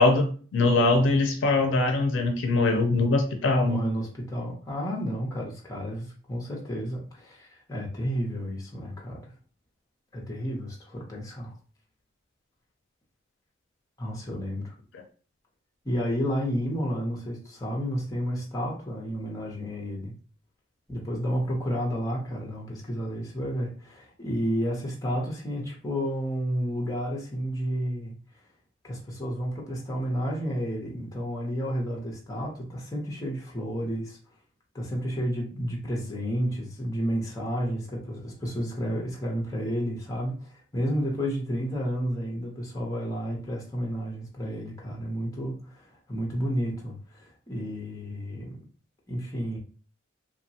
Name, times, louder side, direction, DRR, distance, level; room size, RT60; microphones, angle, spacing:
voice 1, 0.0-3.8, left 2 dB, 75° left, 5 dB, 0.4 m, -22 dB
voice 2, 3.6-9.3 10.1-11.5 14.0-14.7 15.8-20.1 20.9-28.1 28.8-34.2 34.7-48.6 49.1-49.6, equal, 20° left, -2 dB, 0.7 m, -31 dB
2.8 x 2.2 x 2.7 m, 0.40 s
head